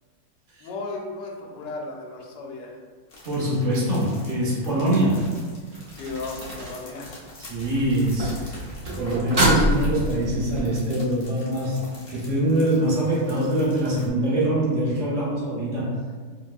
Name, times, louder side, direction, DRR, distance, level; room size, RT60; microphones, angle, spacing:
voice 1, 0.6-2.8 5.9-7.1, left 3 dB, 75° left, -1 dB, 1.2 m, -35 dB
sound 1, 3.1-14.1, left 2 dB, 55° left, 0.7 m, -46 dB
voice 2, 3.2-5.4 7.4-15.9, right 1 dB, 80° right, -6 dB, 0.3 m, -24 dB
sound 2, 5.2-6.8 8.1-8.4 8.7-10.1, equal, 60° right, 1.1 m, -45 dB
sound 3, 7.5-10.6 14.1-14.2, right 1 dB, 45° right, 0.7 m, -25 dB
4.5 x 2.1 x 2.3 m, 1.5 s
omnidirectional pair, 2.1 m